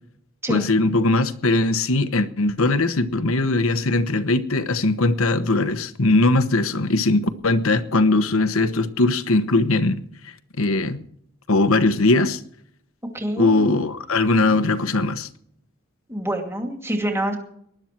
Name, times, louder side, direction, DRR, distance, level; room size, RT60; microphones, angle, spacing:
voice 1, 0.5-11.0 11.5-12.4 13.4-15.3, left 2 dB, 80° left, 1.2 m, -20 dB
voice 2, 13.1-13.8 16.1-17.4, right 1 dB, 10° right, 2.4 m, -26 dB
19.5 x 12.0 x 4.5 m
head